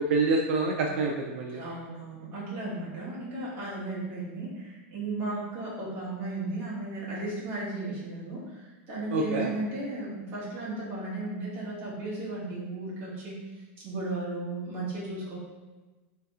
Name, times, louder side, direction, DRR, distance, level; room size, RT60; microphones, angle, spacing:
voice 1, 0.0-1.6 9.1-9.5, right 3 dB, 70° right, 0 dB, 0.4 m, -26 dB
voice 2, 1.5-15.5, right 2 dB, 30° right, -7 dB, 1.3 m, -35 dB
3.4 x 2.9 x 3.5 m, 1.2 s
supercardioid pair, 170°, 7 cm